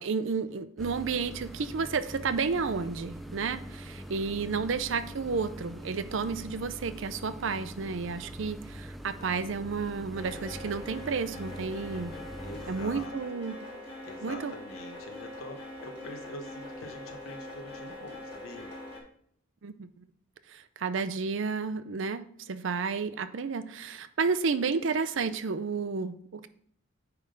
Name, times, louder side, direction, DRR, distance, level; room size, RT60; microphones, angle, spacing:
voice 1, 0.0-12.1 12.7-13.5 14.2-14.5 19.6-20.0 20.5-26.5, right 5 dB, 70° right, 13 dB, 0.5 m, -31 dB
sound 1, 0.8-13.1, equal, ahead, 0.4 m, -43 dB
voice 2, 4.0-4.8 12.4-13.5 14.0-18.7, left 1 dB, 90° left, 3 dB, 1.0 m, -46 dB
sound 2, 10.1-19.0, left 1 dB, 30° left, 2.0 m, -43 dB
9.3 x 3.5 x 5.1 m, 0.65 s
head